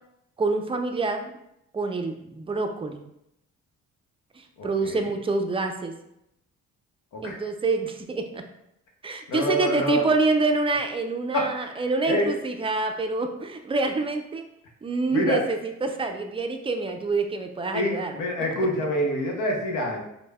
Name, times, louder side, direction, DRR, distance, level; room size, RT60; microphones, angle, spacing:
voice 1, 0.4-1.3 1.7-3.0 4.4-5.9 7.2-8.4 9.0-14.4 14.8-18.1, right 3 dB, 20° right, 5 dB, 0.4 m, -26 dB
voice 2, 4.6-5.1 7.1-7.5 9.3-10.1 11.3-11.8 12.1-12.3 15.1-15.4 17.7-20.0, left 1 dB, 85° left, 1 dB, 0.8 m, -26 dB
5.1 x 2.1 x 2.2 m, 0.80 s
cardioid pair, 90°, 30 cm